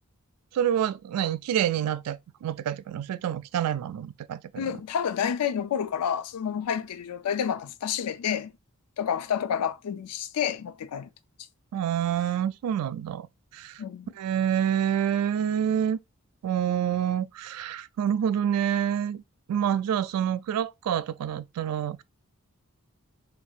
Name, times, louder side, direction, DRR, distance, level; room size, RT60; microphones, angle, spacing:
voice 1, 0.5-4.8 11.7-13.3 13.5-13.8 14.2-16.0 16.4-19.2 19.5-22.0, right 9 dB, 85° right, 0.3 m, -27 dB
voice 2, 4.5-8.5 9.0-11.1 13.8-14.1, left 8 dB, 90° left, 0.4 m, -29 dB
4.5 x 2.7 x 2.3 m
head